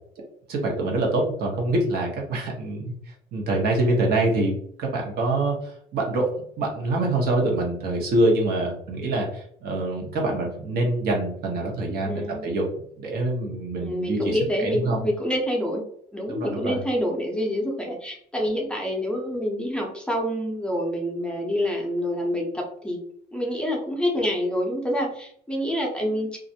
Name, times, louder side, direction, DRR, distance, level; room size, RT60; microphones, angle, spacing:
voice 1, 0.5-2.9 3.3-4.5 4.8-5.5 5.9-6.3 6.6-12.7 13.0-15.0 16.3-16.8, right 2 dB, 65° right, -1 dB, 0.9 m, -25 dB
voice 2, 12.0-12.4 13.8-15.8 16.1-23.0 23.3-26.4, equal, 5° left, -1 dB, 0.6 m, -27 dB
2.4 x 2.1 x 2.7 m, 0.66 s
cardioid pair, 110°, 17 cm